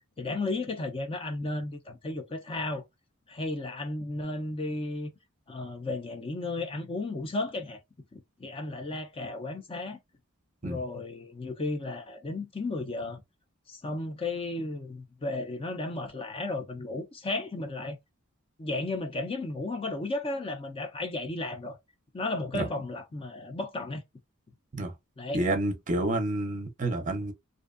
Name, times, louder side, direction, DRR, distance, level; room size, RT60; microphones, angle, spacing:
voice 1, 0.2-2.8 3.3-5.1 5.5-7.8 8.1-10.0 10.6-13.2 13.7-18.0 18.6-21.8 22.1-24.0 25.2-25.4, left 2 dB, 25° left, 0.5 m, -34 dB
voice 2, 25.3-27.3, right 2 dB, 35° right, 0.6 m, -29 dB
2.5 x 2.2 x 2.4 m
head